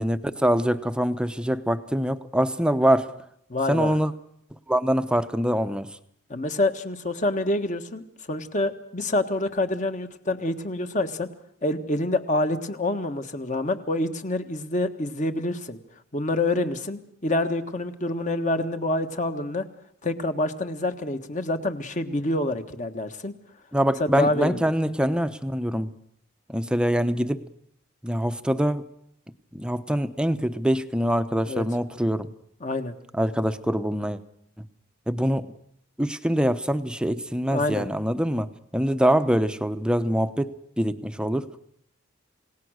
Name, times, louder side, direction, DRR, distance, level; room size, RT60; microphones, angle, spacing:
voice 1, 0.0-3.2 3.7-4.1 4.7-6.0 23.7-25.9 26.5-27.4 28.0-28.8 29.5-32.3 33.1-34.2 35.1-35.5 36.0-38.5 38.7-41.5, equal, 5° right, 11 dB, 0.8 m, -24 dB
voice 2, 3.5-4.0 6.3-8.0 8.3-11.3 11.6-15.8 16.1-19.6 20.0-23.3 24.0-24.7 31.5-31.7 32.6-32.9 37.5-37.8, left 2 dB, 35° left, 8 dB, 1.5 m, -27 dB
28.0 x 18.0 x 6.5 m, 0.71 s
head